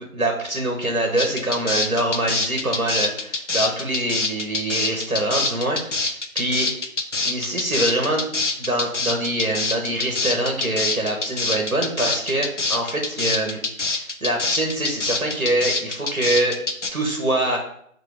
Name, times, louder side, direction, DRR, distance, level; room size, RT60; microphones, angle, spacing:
voice 1, 0.0-6.7 7.2-8.3 8.6-16.6 16.9-17.6, right 1 dB, 90° right, 1 dB, 1.7 m, -24 dB
sound 1, 1.2-16.9, left 3 dB, 60° left, 0.8 m, -25 dB
5.4 x 3.8 x 5.1 m, 0.69 s
figure-of-eight pair, 170°, 41 cm